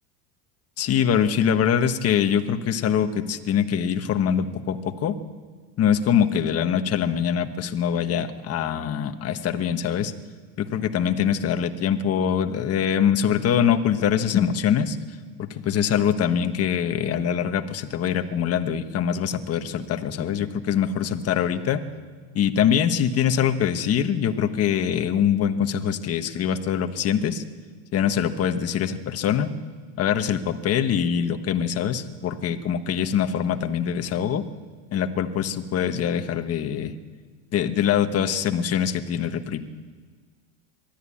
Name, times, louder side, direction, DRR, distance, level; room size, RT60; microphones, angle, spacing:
voice 1, 0.8-5.2 5.8-10.1 10.6-15.0 15.4-21.8 22.3-27.4 27.9-29.5 30.0-34.4 34.9-36.9 37.5-39.6, left 8 dB, 30° left, 8 dB, 1.4 m, -23 dB
22.0 x 13.5 x 8.7 m, 1.5 s
supercardioid pair, 135°, 45 cm